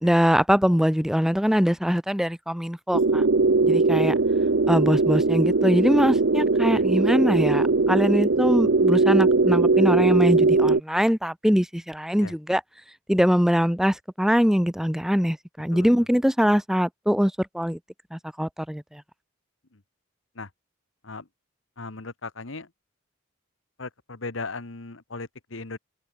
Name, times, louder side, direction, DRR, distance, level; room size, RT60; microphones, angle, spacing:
voice 1, 0.0-3.2 3.6-4.1 4.7-12.6 13.1-17.8 18.1-19.0, equal, ahead, 0.9 m, -22 dB
sound 1, 2.9-10.8, right 3 dB, 60° right, 0.8 m, -20 dB
voice 2, 3.9-4.2 6.7-6.8 12.2-12.3 15.7-15.9 19.7-19.8 20.3-20.5 21.0-21.3 21.8-22.7 23.8-25.8, left 3 dB, 70° left, 1.5 m, -37 dB
open air
head